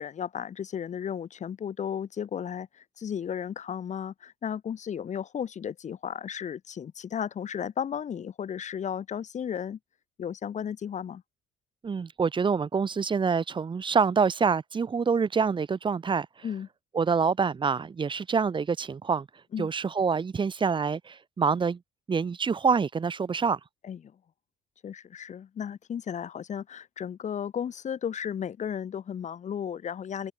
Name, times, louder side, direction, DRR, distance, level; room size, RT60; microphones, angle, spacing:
voice 1, 0.0-9.8 10.2-11.2 16.4-16.7 19.5-19.7 23.8-24.0 24.8-30.3, left 8 dB, 45° left, 2.8 m, -34 dB
voice 2, 11.8-16.3 16.9-19.3 19.6-21.8 22.1-23.6, right 5 dB, 30° right, 1.6 m, -26 dB
cardioid pair, 110°, 17 cm